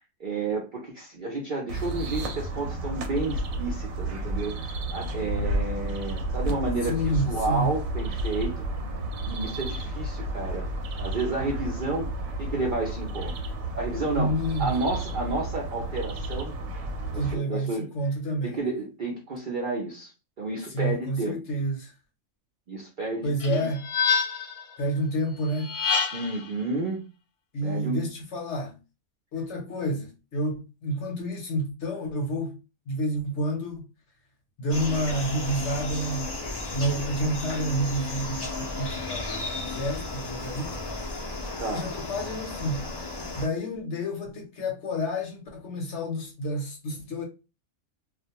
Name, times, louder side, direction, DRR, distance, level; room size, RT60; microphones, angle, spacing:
voice 1, 0.2-8.7 9.2-10.6 11.0-12.1 12.4-13.3 13.8-16.5 17.1-17.9 18.4-20.1 20.4-21.4 22.7-23.7 26.1-27.0 27.6-28.0 41.6-41.8, right 3 dB, 60° right, 0.5 m, -31 dB
sound 1, 1.7-17.3, right 1 dB, 75° right, 1.0 m, -32 dB
voice 2, 6.9-7.7 14.1-14.7 17.1-18.7 20.7-21.9 23.2-23.9 24.8-25.7 27.5-28.8 29.3-32.6 32.9-33.9 34.6-36.5 36.7-40.9 41.7-42.9 43.4-47.2, right 1 dB, 60° left, 0.9 m, -29 dB
sound 2, 23.4-24.6 25.6-26.4, left 6 dB, 85° left, 1.1 m, -26 dB
sound 3, 34.7-43.5, left 2 dB, 40° left, 0.3 m, -34 dB
2.4 x 2.1 x 2.8 m
omnidirectional pair, 1.5 m